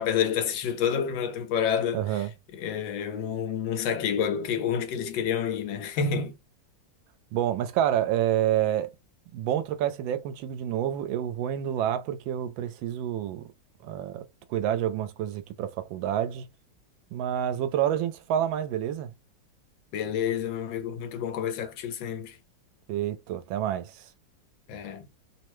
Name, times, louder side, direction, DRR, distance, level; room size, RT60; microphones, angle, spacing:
voice 1, 0.0-2.3 2.5-6.4 19.9-22.4 24.7-25.1, left 7 dB, 80° left, 1.5 m, -29 dB
voice 2, 1.9-2.3 7.3-8.9 9.3-13.4 13.8-16.5 17.1-19.1 22.9-24.1, right 11 dB, 85° right, 1.3 m, -28 dB
3.5 x 2.1 x 3.0 m
omnidirectional pair, 2.1 m